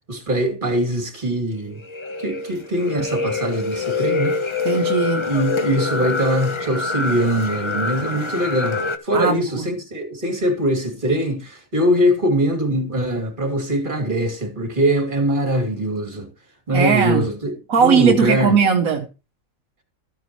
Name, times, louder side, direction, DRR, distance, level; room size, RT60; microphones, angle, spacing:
voice 1, 0.1-1.8 2.2-4.4 5.3-16.3 16.7-18.5, right 1 dB, 35° right, 2.8 m, -22 dB
sound 1, 1.8-9.0, left 4 dB, 25° left, 0.8 m, -25 dB
voice 2, 4.6-5.3 9.1-9.6 16.7-17.3 17.7-19.1, right 6 dB, 75° right, 1.3 m, -18 dB
14.0 x 9.3 x 3.0 m
omnidirectional pair, 1.5 m